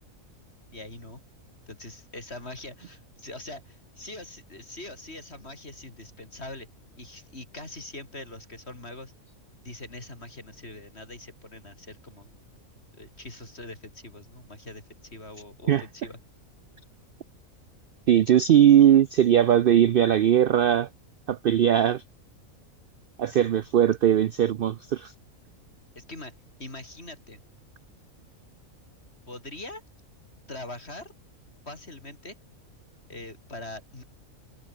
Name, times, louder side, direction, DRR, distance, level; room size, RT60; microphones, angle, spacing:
voice 1, 0.7-1.2 1.7-6.7 7.0-9.1 9.6-12.4 13.0-16.2 26.0-26.3 26.6-27.4 29.3-29.8 30.5-31.1 31.7-32.4 33.1-34.0, left 2 dB, 50° left, 5.4 m, -42 dB
voice 2, 18.1-20.9 21.3-22.0 23.2-25.1, right 10 dB, 60° right, 0.6 m, -19 dB
omnidirectional pair, 1.4 m